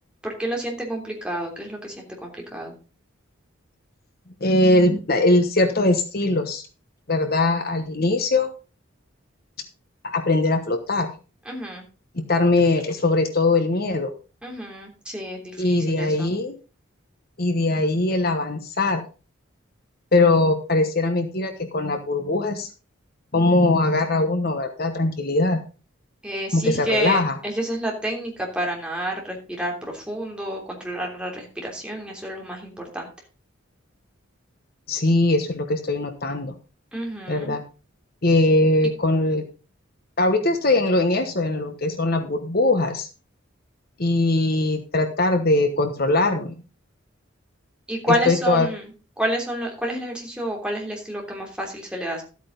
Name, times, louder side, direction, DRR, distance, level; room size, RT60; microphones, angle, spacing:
voice 1, 0.2-2.7 11.4-11.8 14.4-16.3 26.2-33.1 36.9-37.5 47.9-48.9 49.2-52.2, right 1 dB, 5° right, -1 dB, 3.2 m, -29 dB
voice 2, 4.4-6.6 7.1-8.5 10.0-11.1 12.1-14.1 15.6-16.5 17.4-19.0 20.1-22.7 23.3-25.6 26.5-27.4 34.9-36.5 37.3-37.6 38.2-39.4 40.2-43.1 44.0-46.6 48.1-48.7, left 2 dB, 50° left, 6 dB, 1.2 m, -21 dB
13.0 x 8.5 x 3.9 m, 0.34 s
head